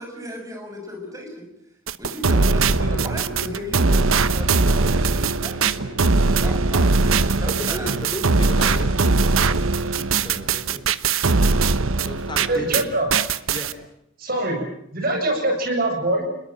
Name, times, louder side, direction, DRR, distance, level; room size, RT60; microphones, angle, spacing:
voice 1, 0.0-1.5 2.0-5.9 6.4-8.0, equal, 15° right, 2 dB, 6.8 m, -35 dB
sound 1, 1.9-12.8 13.1-13.7, right 3 dB, 80° right, 1.1 m, -20 dB
voice 2, 7.4-10.9 12.0-12.9 13.5-13.7, left 1 dB, 25° left, 5 dB, 3.2 m, -35 dB
voice 3, 12.5-13.1 14.2-14.6 14.9-16.2, right 1 dB, 45° right, 3 dB, 7.6 m, -23 dB
29.0 x 21.5 x 7.6 m, 0.75 s
head